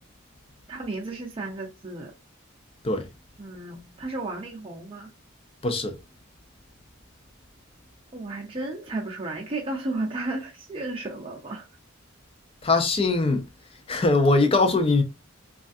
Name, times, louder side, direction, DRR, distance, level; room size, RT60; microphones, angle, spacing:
voice 1, 0.7-2.1 3.4-5.1 8.1-11.7, right 2 dB, 25° right, 0.6 m, -33 dB
voice 2, 5.6-6.0 12.6-13.4 13.9-15.0, left 3 dB, 30° left, 0.4 m, -21 dB
3.2 x 2.4 x 2.5 m
head